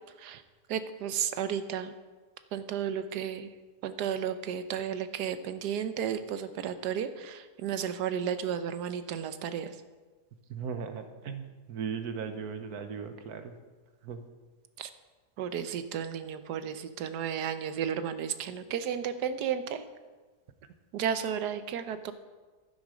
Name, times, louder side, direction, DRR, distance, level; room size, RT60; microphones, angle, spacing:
voice 1, 0.7-1.9 2.5-3.5 3.8-9.7 14.8-14.9 15.4-19.8 20.9-22.1, right 8 dB, 90° right, 11 dB, 1.3 m, -33 dB
voice 2, 10.5-13.6 14.0-14.2, right 6 dB, 70° right, 8 dB, 1.4 m, -37 dB
11.5 x 9.8 x 5.0 m, 1.3 s
omnidirectional pair, 1.7 m